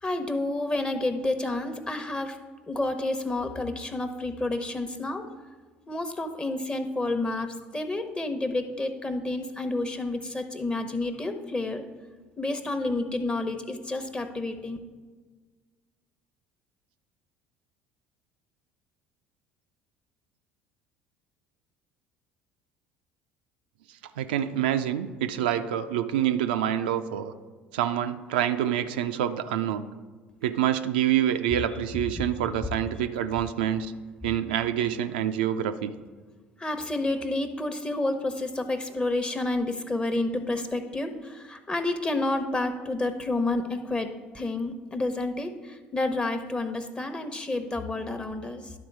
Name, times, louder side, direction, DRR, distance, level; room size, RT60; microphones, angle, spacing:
voice 1, 0.0-2.4 2.7-5.2 5.9-11.8 12.4-14.8 36.6-48.7, left 2 dB, 20° left, 7 dB, 0.9 m, -30 dB
voice 2, 24.2-27.3 27.7-29.9 30.4-33.9 34.2-35.9, right 10 dB, 80° right, 8 dB, 0.4 m, -26 dB
11.0 x 3.9 x 4.7 m, 1.4 s
hypercardioid pair, 65°, 5 cm